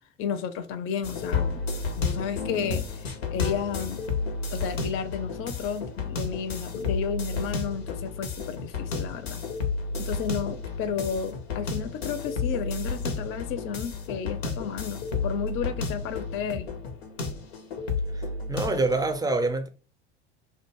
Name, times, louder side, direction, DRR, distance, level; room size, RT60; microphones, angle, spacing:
voice 1, 0.2-1.6 2.0-4.0 4.5-9.4 10.0-16.7, left 7 dB, 45° left, 0.5 m, -32 dB
sound 1, 1.0-19.2, left 4 dB, 90° left, 0.7 m, -32 dB
voice 2, 18.1-19.7, right 2 dB, 15° right, 0.4 m, -26 dB
2.4 x 2.2 x 2.8 m
hypercardioid pair, 85°, 30 cm